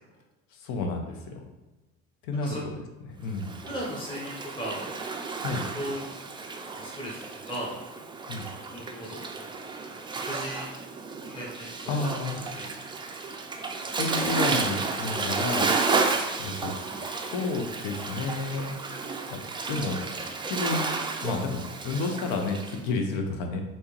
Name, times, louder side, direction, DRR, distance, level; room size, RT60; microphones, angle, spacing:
voice 1, 0.5-1.4 2.2-2.8 3.2-3.6 5.4-5.6 8.3-8.5 11.9-12.4 14.0-15.7 16.4-16.7 17.1-18.7 19.3-19.4 19.7-20.0 20.5-20.9 21.2-23.6, left 3 dB, 80° left, 3 dB, 0.7 m, -31 dB
Waves surf, 3.3-22.8, right 4 dB, 15° right, 0.3 m, -32 dB
voice 2, 3.7-4.8 5.7-6.0 6.8-7.7 8.7-9.5 9.9-10.7 11.2-12.1 12.4-12.6, equal, 15° left, -5 dB, 1.0 m, -37 dB
3.3 x 2.8 x 3.1 m, 1.1 s
supercardioid pair, 85°, 33 cm